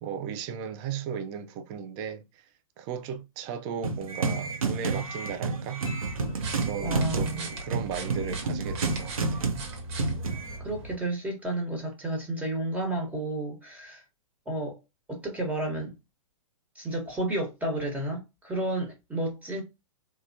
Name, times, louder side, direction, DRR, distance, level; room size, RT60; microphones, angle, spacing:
voice 1, 0.0-2.5 2.8-5.8 6.6-9.5, right 7 dB, 30° right, 0.4 m, -36 dB
sound 1, 3.8-10.6, right 4 dB, 85° right, 0.8 m, -30 dB
sound 2, 5.9-7.2 10.0-10.1, left 12 dB, 15° left, 0.9 m, -51 dB
sound 3, 6.1-11.0, right 1 dB, 50° right, 1.2 m, -39 dB
voice 2, 6.8-7.5 10.6-14.0 14.5-14.8 15.1-15.9 16.7-19.6, right 1 dB, 10° right, 1.2 m, -31 dB
3.1 x 2.2 x 2.6 m
hypercardioid pair, 120°, 18 cm